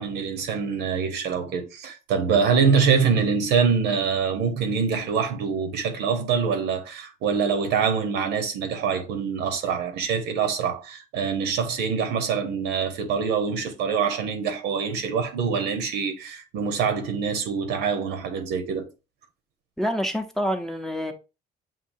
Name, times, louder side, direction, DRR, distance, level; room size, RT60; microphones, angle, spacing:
voice 1, 0.0-18.9, right 6 dB, 85° right, 1.0 m, -25 dB
voice 2, 19.8-21.1, equal, ahead, 0.7 m, -27 dB
7.3 x 2.7 x 2.6 m
cardioid pair, 110°, 17 cm